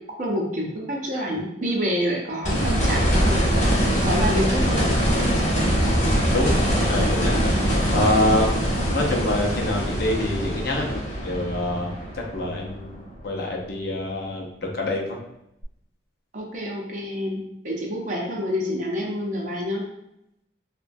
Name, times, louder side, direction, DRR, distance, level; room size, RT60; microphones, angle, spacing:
voice 1, 0.2-3.4 3.6-4.9 16.3-19.8, equal, 40° right, -2 dB, 0.5 m, -28 dB
sound 1, 2.4-13.4 15.6-15.7, equal, 40° left, 0.9 m, -23 dB
voice 2, 6.0-7.4 7.9-15.2, left 1 dB, 55° left, 0 dB, 0.5 m, -26 dB
3.0 x 2.1 x 2.6 m, 0.82 s
head